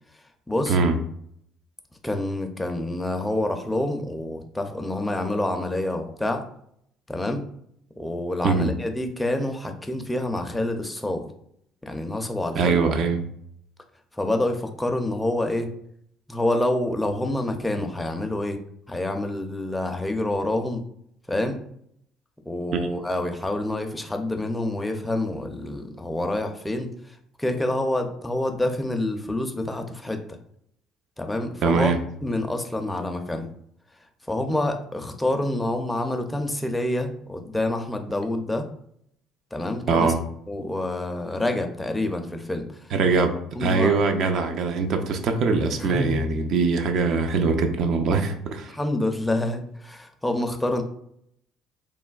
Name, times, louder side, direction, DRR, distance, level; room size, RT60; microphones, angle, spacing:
voice 1, 0.5-0.8 2.0-6.5 7.1-7.4 8.0-11.3 11.8-12.8 14.1-15.7 16.3-18.6 18.9-20.8 21.3-21.6 22.5-30.4 31.2-31.9 32.2-33.5 34.3-38.7 39.5-40.1 40.5-42.9 43.5-44.0 45.8-46.2 48.7-50.8, left 1 dB, 10° left, 5 dB, 0.5 m, -27 dB
voice 2, 12.6-13.2 22.7-22.8 31.6-32.0 39.9-40.2 42.9-48.7, right 4 dB, 60° right, 6 dB, 0.4 m, -22 dB
3.2 x 2.1 x 2.3 m, 0.68 s
supercardioid pair, 70°, 0 cm